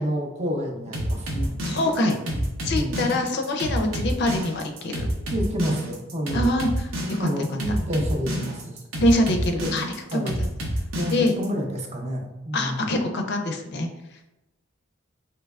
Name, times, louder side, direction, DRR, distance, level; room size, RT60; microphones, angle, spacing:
voice 1, 0.0-1.8 2.2-3.0 5.3-6.6 7.2-8.8 9.6-9.7 10.1-10.4 10.9-12.9, equal, 35° right, 2 dB, 0.5 m, -29 dB
sound 1, 0.9-11.5, equal, 90° right, 0.7 m, -28 dB
voice 2, 1.7-2.2 2.6-5.1 6.3-7.5 9.0-9.9 10.1-10.5 11.1-11.3 12.5-13.9, left 1 dB, 55° left, 5 dB, 0.4 m, -24 dB
3.2 x 2.9 x 2.3 m, 0.97 s
head